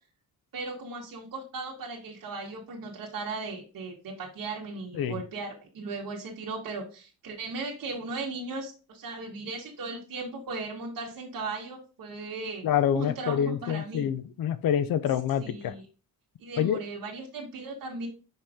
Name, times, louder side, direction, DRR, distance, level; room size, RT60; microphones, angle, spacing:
voice 1, 0.5-12.7 12.9-14.1 15.4-15.8 16.4-18.1, right 3 dB, 65° right, 1.8 m, -37 dB
voice 2, 12.6-15.7 16.6-16.8, left 9 dB, 70° left, 0.7 m, -27 dB
5.3 x 5.1 x 3.6 m
wide cardioid pair, 155°, 36 cm